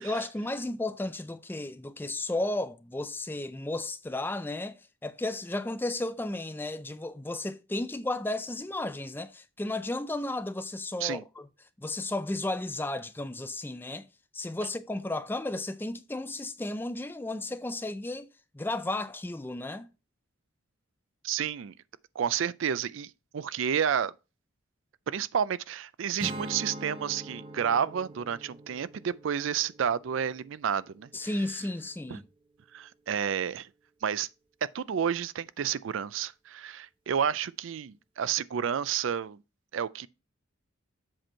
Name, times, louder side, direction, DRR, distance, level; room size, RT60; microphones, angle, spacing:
voice 1, 0.0-11.5 11.8-14.1 14.3-18.3 18.5-19.9 31.1-32.2, left 2 dB, 10° left, 0.4 m, -33 dB
voice 2, 21.2-21.8 22.2-24.1 25.1-31.1 32.1-32.2 32.7-33.7 34.0-34.3 34.7-39.4 39.7-40.1, right 8 dB, 70° right, 0.4 m, -30 dB
Strum, 26.2-31.5, right 1 dB, 25° right, 1.0 m, -43 dB
7.6 x 4.5 x 4.4 m
head